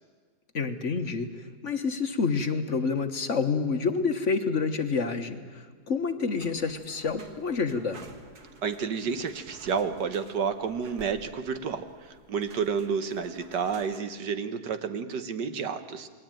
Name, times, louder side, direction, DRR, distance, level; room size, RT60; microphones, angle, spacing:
voice 1, 0.5-8.0, left 5 dB, 45° left, 7 dB, 1.6 m, -28 dB
sound 1, 6.4-14.0, right 3 dB, 65° right, 2.3 m, -52 dB
voice 2, 8.6-16.1, right 6 dB, 80° right, 9 dB, 1.9 m, -30 dB
28.5 x 20.5 x 9.1 m, 1.6 s
omnidirectional pair, 1.8 m